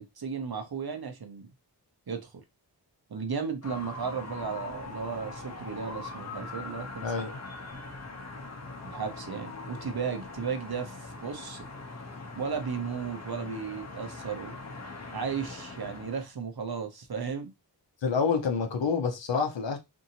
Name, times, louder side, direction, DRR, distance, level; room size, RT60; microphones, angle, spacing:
voice 1, 0.0-1.5 2.1-2.3 3.1-7.1 8.8-11.6 12.4-14.6 15.1-17.5, right 6 dB, 60° right, 0.7 m, -35 dB
sound 1, 3.6-16.3, left 3 dB, 40° left, 0.7 m, -42 dB
voice 2, 7.0-7.4 18.0-19.8, left 5 dB, 80° left, 0.7 m, -28 dB
2.7 x 2.6 x 2.7 m
wide cardioid pair, 50°, 43 cm